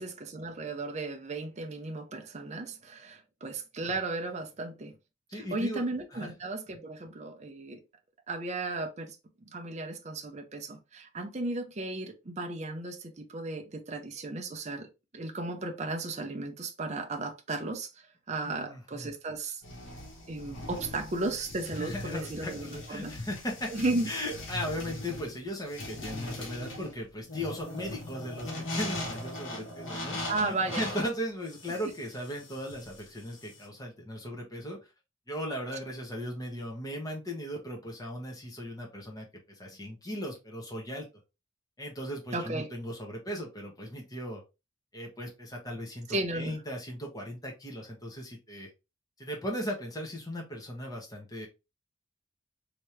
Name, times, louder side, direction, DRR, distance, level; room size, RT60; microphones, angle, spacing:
voice 1, 0.0-5.0 5.3-7.8 8.3-9.2 9.5-17.9 18.3-19.6 20.3-23.1 23.7-24.1 30.0-30.9 42.3-42.7 46.1-46.6, right 2 dB, 35° right, 0.6 m, -35 dB
voice 2, 5.3-5.9 6.1-6.3 18.4-19.1 21.7-23.7 24.1-34.8 35.3-41.1 41.8-44.4 44.9-46.1 46.3-48.7 49.2-51.5, equal, 20° left, 1.1 m, -37 dB
sound 1, 19.6-33.6, left 1 dB, 75° left, 1.3 m, -40 dB
3.3 x 2.9 x 3.2 m
head